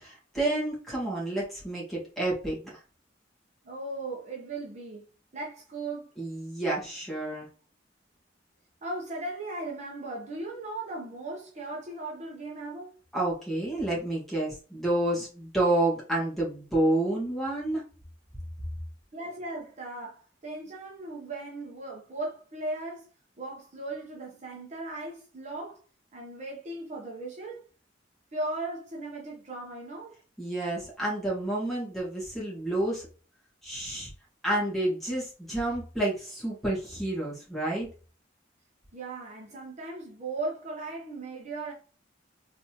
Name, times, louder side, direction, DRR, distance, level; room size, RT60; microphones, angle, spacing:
voice 1, 0.0-2.6 6.2-7.5 13.1-17.8 30.4-33.1 33.6-34.1 34.4-37.9, right 1 dB, ahead, 1.9 m, -29 dB
voice 2, 3.6-5.1 5.3-6.1 8.8-12.9 19.1-23.0 23.4-25.8 26.1-27.6 28.3-30.2 38.9-41.7, right 2 dB, 40° right, 0.9 m, -37 dB
3.9 x 3.4 x 3.0 m
head